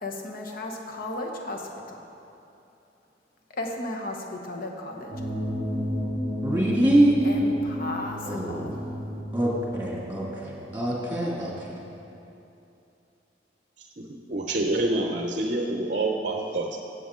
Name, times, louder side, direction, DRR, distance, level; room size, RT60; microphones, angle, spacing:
voice 1, 0.0-2.1 3.5-5.1 7.2-8.8, left 2 dB, 50° left, 2 dB, 1.0 m, -35 dB
sound 1, 5.1-11.9, equal, 25° left, 1.2 m, -33 dB
voice 2, 6.4-7.2 8.3-8.9 9.3-11.7, right 1 dB, 10° right, -5 dB, 2.2 m, -24 dB
voice 3, 14.0-16.8, right 2 dB, 45° right, 2 dB, 0.6 m, -27 dB
14.5 x 7.9 x 3.8 m, 2.8 s
head